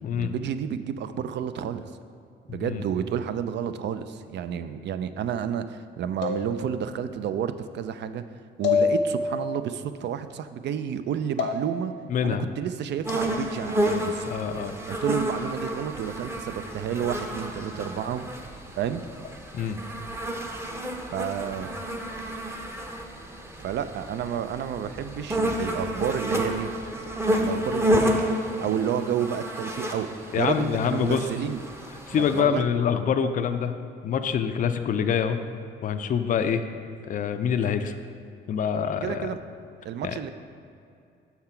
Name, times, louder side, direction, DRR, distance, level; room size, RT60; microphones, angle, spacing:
voice 1, 0.1-1.9 2.5-8.2 8.6-11.9 12.2-14.3 14.9-18.3 18.8-19.0 21.1-21.7 23.6-26.7 27.3-28.3 28.6-30.1 30.3-31.6 32.1-32.7 39.0-39.4 39.8-40.3, right 8 dB, 60° right, 11 dB, 0.4 m, -30 dB
sound 1, 6.2-7.0 8.6-9.6 11.4-12.0 13.1-13.3, left 5 dB, 70° left, 0.8 m, -27 dB
voice 2, 12.1-12.4 14.3-14.8 19.5-19.8 30.3-31.3 32.1-33.7 34.0-35.4 35.8-36.7 37.1-37.9 38.5-39.3 40.0-40.2, left 7 dB, 45° left, 8 dB, 0.4 m, -25 dB
sound 2, 13.0-32.4, equal, 10° right, 0.7 m, -30 dB
5.8 x 5.8 x 4.4 m, 2.5 s
cardioid pair, 90°, 20 cm